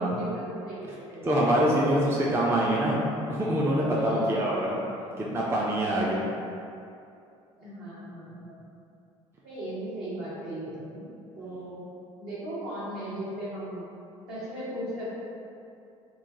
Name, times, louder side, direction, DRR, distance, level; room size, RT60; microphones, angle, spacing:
voice 1, 0.0-1.3 3.9-4.4 7.6-8.6 9.4-11.1 11.4-11.8 12.2-13.8 14.3-15.2, right 1 dB, 65° right, -10 dB, 1.3 m, -37 dB
voice 2, 1.2-3.0 3.3-4.8 5.2-6.3 11.4-11.7, right 1 dB, 15° right, -4 dB, 0.4 m, -25 dB
3.0 x 2.2 x 3.5 m, 2.5 s
figure-of-eight pair, 55°, 17 cm